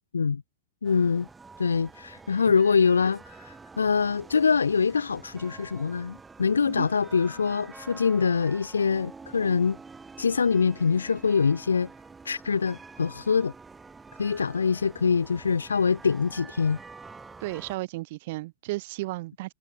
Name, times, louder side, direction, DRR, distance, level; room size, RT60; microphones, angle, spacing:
voice 1, 0.8-1.3 1.6-9.8 10.2-11.9 12.3-13.5 14.2-16.8, left 5 dB, 75° left, 0.4 m, -24 dB
sound 1, 0.8-17.8, right 4 dB, 15° right, 6.8 m, -47 dB
voice 2, 17.4-19.5, right 20 dB, 50° right, 2.5 m, -34 dB
figure-of-eight pair, 90°, 0 cm